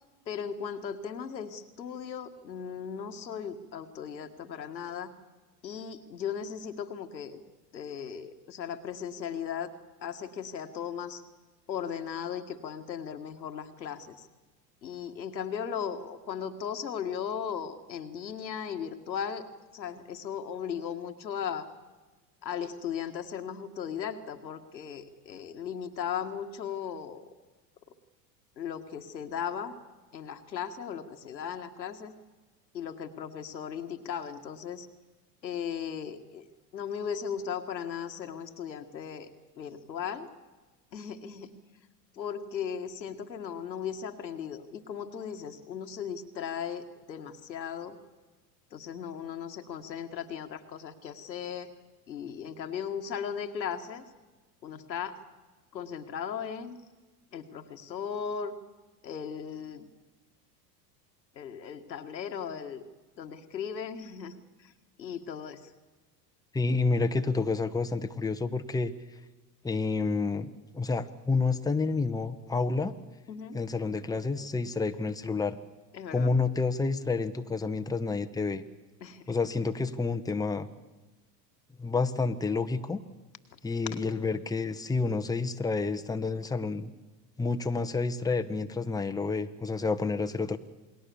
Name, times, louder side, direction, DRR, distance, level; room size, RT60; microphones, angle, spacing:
voice 1, 0.3-5.1 5.6-7.4 7.7-9.7 10.0-11.2 11.7-14.3 14.8-19.5 19.7-21.7 22.4-27.3 28.6-29.8 30.1-32.1 32.7-34.9 35.4-36.5 36.7-39.3 39.6-40.3 40.9-41.5 42.1-48.0 48.7-51.7 52.1-54.0 54.6-55.2 55.7-56.8 57.3-58.6 59.0-59.9 61.3-62.8 63.2-64.7 65.0-65.7 73.3-73.6 75.9-76.3 79.0-79.4, left 7 dB, 90° left, 6 dB, 1.9 m, -37 dB
voice 2, 66.5-68.9 69.6-70.5 70.7-72.9 73.5-75.6 76.1-78.6 79.3-80.7 81.8-83.0 83.6-86.9 87.4-90.6, left 3 dB, 5° left, 7 dB, 1.2 m, -29 dB
28.0 x 20.5 x 7.0 m, 1.2 s
hypercardioid pair, 85°, 50 cm